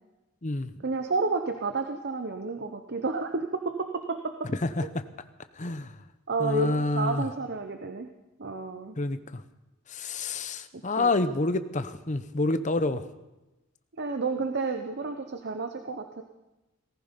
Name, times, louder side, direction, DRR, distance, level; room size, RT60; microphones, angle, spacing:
voice 1, 0.8-4.5 6.3-8.1 8.4-8.9 10.7-11.1 14.0-16.2, right 3 dB, 50° right, 6 dB, 0.8 m, -31 dB
voice 2, 5.6-5.9 6.4-7.3 9.0-9.4 9.9-13.1, left 2 dB, 35° left, 11 dB, 0.7 m, -28 dB
18.0 x 14.5 x 5.3 m, 1.0 s
head